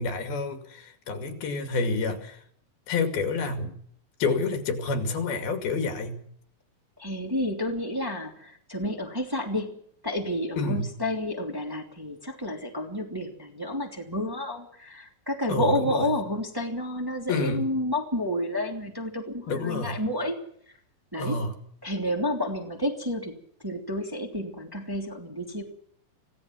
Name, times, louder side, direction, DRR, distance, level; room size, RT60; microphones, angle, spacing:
voice 1, 0.0-2.4 2.9-3.8 4.2-6.2 10.6-10.9 15.5-16.1 17.3-17.6 19.5-20.0 21.2-21.5, left 3 dB, 85° left, 6 dB, 4.3 m, -28 dB
voice 2, 7.0-9.8 10.0-20.4 21.1-21.4 21.8-25.6, left 1 dB, 5° right, 2 dB, 2.3 m, -30 dB
26.0 x 17.5 x 6.1 m, 0.65 s
omnidirectional pair, 4.2 m